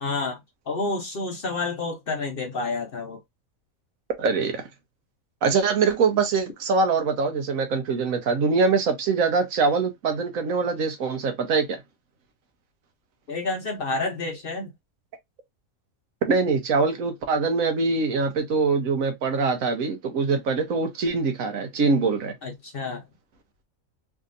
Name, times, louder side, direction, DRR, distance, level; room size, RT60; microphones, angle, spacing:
voice 1, 0.0-0.4 0.7-3.2 13.3-14.7 22.4-23.0, left 3 dB, 50° left, 0.9 m, -29 dB
voice 2, 4.2-4.6 5.4-11.8 16.2-22.3, right 4 dB, 75° right, 1.3 m, -23 dB
3.5 x 2.7 x 2.5 m
omnidirectional pair, 1.5 m